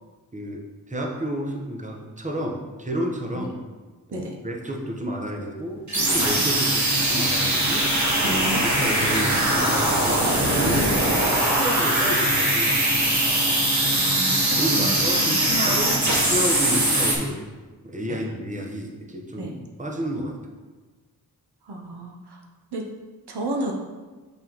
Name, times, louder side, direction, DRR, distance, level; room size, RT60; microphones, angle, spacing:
voice 1, 0.3-3.6 4.1-7.9 8.2-10.9 11.4-13.1 14.5-17.4 17.8-19.5 19.8-20.4, equal, 20° right, 1 dB, 1.0 m, -30 dB
sound 1, 5.9-17.2, right 1 dB, 45° right, 1.6 m, -21 dB
voice 2, 8.2-8.6 10.8-10.9 13.9-15.8 16.7-16.8 18.1-18.2 19.3-19.5 21.6-22.4 22.7-22.8 23.3-23.7, right 2 dB, 80° right, 0 dB, 0.8 m, -32 dB
6.0 x 5.4 x 3.0 m, 1.3 s
cardioid pair, 50°, 39 cm